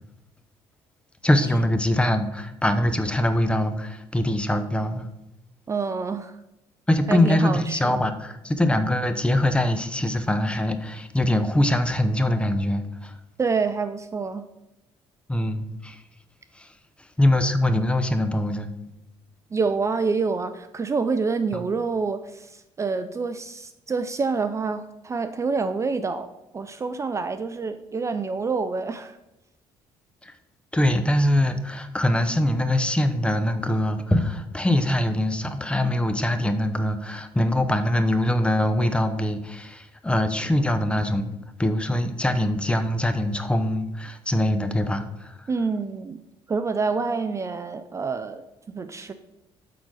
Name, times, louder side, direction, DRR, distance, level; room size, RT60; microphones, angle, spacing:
voice 1, 1.2-5.1 6.9-13.1 15.3-16.0 16.6-16.7 17.2-18.7 21.5-21.6 30.2-30.3 30.7-45.5, left 1 dB, 10° left, 9 dB, 0.8 m, -23 dB
voice 2, 5.7-6.4 7.1-8.0 13.4-14.4 19.5-26.3 26.5-29.2 45.5-46.2 46.5-49.1, right 4 dB, 30° right, 10 dB, 0.5 m, -27 dB
8.5 x 4.0 x 6.3 m, 0.91 s
cardioid pair, 90°, 11 cm